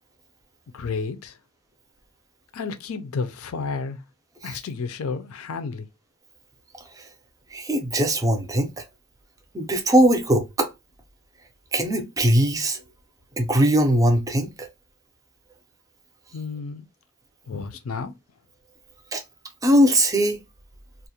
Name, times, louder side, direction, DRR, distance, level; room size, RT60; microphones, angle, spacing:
voice 1, 0.7-1.4 2.5-4.0 4.4-5.9 16.3-16.9 17.4-18.1, left 4 dB, 80° left, 0.5 m, -31 dB
voice 2, 7.5-8.8 9.5-10.7 11.7-12.8 13.4-14.7 19.1-19.2 19.6-20.4, right 1 dB, 15° right, 0.4 m, -20 dB
2.4 x 2.1 x 2.7 m
head